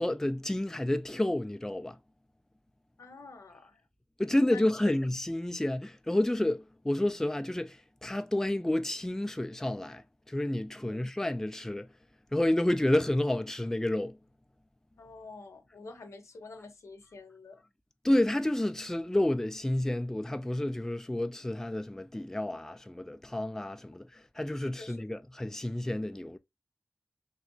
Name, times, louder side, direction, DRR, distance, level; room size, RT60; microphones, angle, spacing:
voice 1, 0.0-2.0 4.2-10.0 10.3-11.9 12.3-14.2 18.0-26.4, left 1 dB, 10° left, 0.3 m, -30 dB
voice 2, 3.0-3.8 4.5-4.7 10.8-11.0 15.0-17.6 24.8-25.0, left 3 dB, 85° left, 0.7 m, -48 dB
3.1 x 2.7 x 2.6 m
wide cardioid pair, 60°, 5 cm